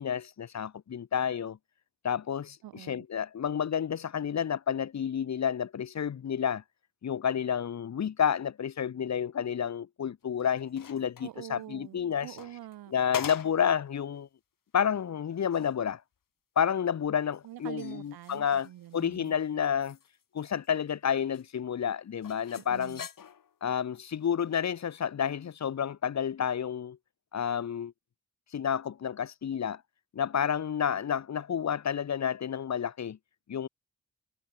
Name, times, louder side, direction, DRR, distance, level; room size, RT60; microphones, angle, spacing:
voice 1, 0.0-1.6 2.0-2.6 2.9-6.6 7.0-12.3 12.9-14.3 14.7-16.0 16.6-20.0 20.3-23.0 23.6-27.0 27.3-27.9 28.5-29.8 30.1-33.2 33.5-33.7, left 8 dB, 50° left, 0.9 m, -30 dB
voice 2, 2.6-3.1 11.2-12.9 17.4-19.4 22.6-23.1, right 13 dB, 90° right, 2.9 m, -45 dB
sound 1, 10.2-11.4 12.1-13.7 14.1-14.2 14.8-14.9 15.3-15.8 17.3-19.3 19.6-20.9 21.3-21.4 22.2-23.6 24.4-24.7, left 8 dB, 65° left, 3.3 m, -44 dB
supercardioid pair, 50°, 36 cm